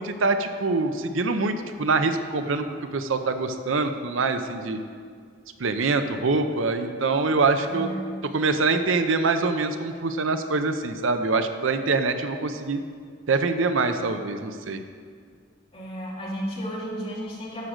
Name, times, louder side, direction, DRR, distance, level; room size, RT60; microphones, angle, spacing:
voice 1, 0.0-1.5 1.8-2.6 2.9-4.8 5.6-7.9 8.3-12.8 13.3-14.8, right 3 dB, 75° right, 8 dB, 0.6 m, -24 dB
voice 2, 7.6-8.0 15.7-17.7, equal, 30° left, -5 dB, 2.3 m, -33 dB
12.0 x 5.0 x 6.5 m, 2.1 s
head